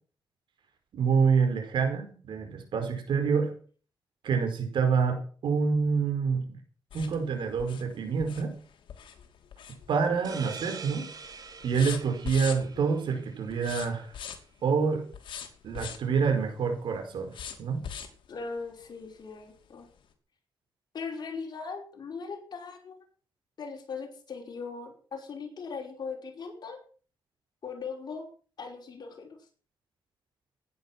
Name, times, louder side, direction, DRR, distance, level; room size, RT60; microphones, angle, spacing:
voice 1, 0.9-3.5 4.2-6.4 6.9-8.6 9.9-11.1 11.6-14.1 14.6-15.0 15.6-17.3 17.6-17.8, right 5 dB, 75° right, 4 dB, 5.0 m, -27 dB
sound 1, 6.9-10.3 10.6-11.0 11.2-12.9 13.5-14.6 15.1-16.1 17.3-18.3 18.8-18.9 19.3-19.4, left 8 dB, 80° left, 2.8 m, -41 dB
sound 2, 10.2-13.7, right 5 dB, 50° right, 3.3 m, -45 dB
voice 2, 18.3-19.9 20.9-23.0 23.6-26.8 27.6-28.3 28.6-29.4, left 5 dB, 55° left, 1 dB, 5.4 m, -39 dB
15.5 x 10.5 x 6.1 m, 0.42 s
cardioid pair, 100°, 8 cm